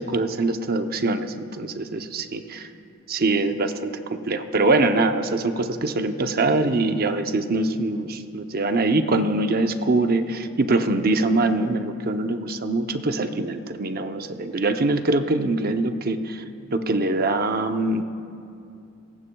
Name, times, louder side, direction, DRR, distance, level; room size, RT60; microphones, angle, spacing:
voice 1, 0.0-2.7 3.1-16.4 16.7-18.0, right 2 dB, 45° right, 7 dB, 0.7 m, -23 dB
24.0 x 18.5 x 2.3 m, 2.5 s
head